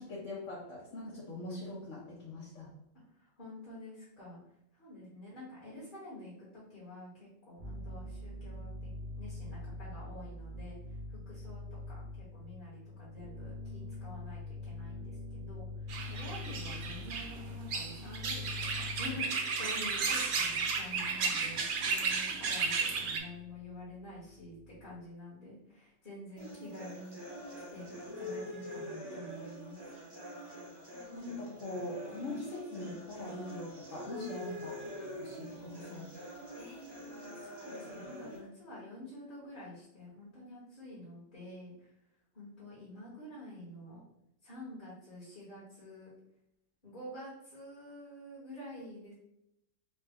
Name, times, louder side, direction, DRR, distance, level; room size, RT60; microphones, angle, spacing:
voice 1, 0.0-2.7 31.1-34.8 35.2-36.1, left 2 dB, 75° left, -6 dB, 1.2 m, -42 dB
voice 2, 3.1-4.4 4.7-11.6 11.9-27.2 27.7-29.9 36.5-42.0 42.3-44.0 44.4-46.1 46.8-49.1, left 1 dB, 40° left, -8 dB, 1.5 m, -48 dB
sound 1, 7.6-25.0, left 2 dB, 90° right, 1.1 m, -45 dB
sound 2, 15.9-23.2, right 5 dB, 60° right, 0.5 m, -34 dB
sound 3, 26.4-38.4, equal, 20° right, 0.9 m, -45 dB
4.0 x 2.2 x 3.5 m, 0.79 s
omnidirectional pair, 1.3 m